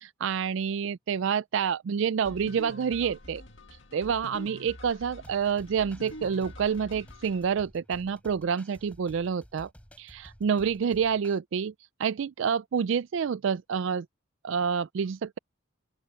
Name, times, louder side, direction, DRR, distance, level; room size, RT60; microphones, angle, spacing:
voice 1, 0.0-3.4 3.9-9.7 10.0-11.7 12.0-14.1 14.4-15.4, right 7 dB, 60° right, 0.3 m, -28 dB
sound 1, 2.2-7.5, left 1 dB, 60° left, 1.9 m, -46 dB
sound 2, 5.2-11.4, equal, 5° left, 7.2 m, -53 dB
open air
head